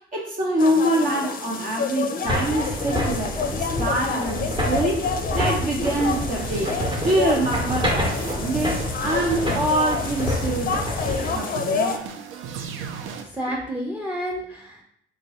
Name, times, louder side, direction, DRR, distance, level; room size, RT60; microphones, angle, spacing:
voice 1, 0.1-10.7 11.3-12.0, right 1 dB, 45° right, -2 dB, 0.9 m, -25 dB
sound 1, 0.6-12.0, left 4 dB, 45° left, 0.5 m, -29 dB
sound 2, 2.2-11.4, left 1 dB, 25° right, 1.0 m, -28 dB
sound 3, 5.8-13.2, right 6 dB, 85° right, 0.4 m, -35 dB
voice 2, 13.2-14.8, equal, 5° right, -3 dB, 0.6 m, -30 dB
3.6 x 3.0 x 2.9 m, 0.67 s
cardioid pair, 90°, 20 cm